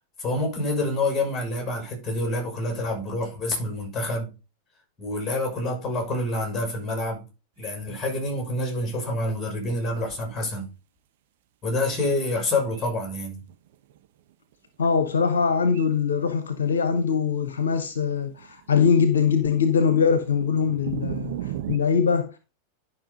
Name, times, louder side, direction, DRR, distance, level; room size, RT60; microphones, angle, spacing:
voice 1, 0.2-4.3 5.0-7.2 7.6-10.7 11.6-13.4, left 2 dB, 20° left, 6.5 m, -27 dB
sound 1, 7.6-7.8 9.2-9.3 9.9-10.0 12.7-12.8 13.5-14.1 14.5-14.6 15.1-15.4 15.7-15.9 16.2-16.3 16.5-21.8, right 12 dB, 55° right, 0.9 m, -37 dB
voice 2, 14.8-22.5, left 6 dB, 65° left, 1.0 m, -22 dB
11.5 x 5.8 x 3.9 m
figure-of-eight pair, 90°, 0 cm